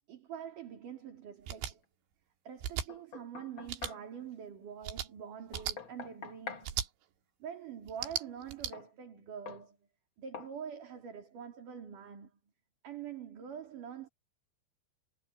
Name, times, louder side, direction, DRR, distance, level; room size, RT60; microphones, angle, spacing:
voice 1, 0.1-1.8 2.4-6.8 7.4-9.8 10.2-12.3 12.8-14.1, right 8 dB, 45° right, 4.3 m, -45 dB
Button On and Off, 1.4-1.7 2.6-2.9 3.7-3.9 4.8-5.1 5.5-5.8 6.6-6.9 7.9-8.7, right 10 dB, 75° right, 4.1 m, -36 dB
Knock, 2.9-4.1 5.5-6.7 8.7-8.9 9.5-9.7 10.3-10.6, left 6 dB, 85° left, 1.1 m, -45 dB
omnidirectional pair, 5.4 m